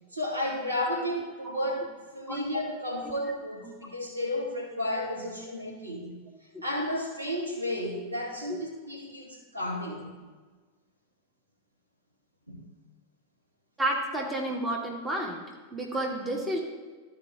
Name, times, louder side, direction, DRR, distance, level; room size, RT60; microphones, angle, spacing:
voice 1, 0.1-6.2 6.6-10.1 12.5-12.6, left 1 dB, 80° right, -3 dB, 1.9 m, -32 dB
voice 2, 13.8-15.4 15.7-16.6, right 1 dB, 10° right, -1 dB, 1.5 m, -30 dB
13.0 x 4.6 x 3.6 m, 1.3 s
figure-of-eight pair, 90°, 0 cm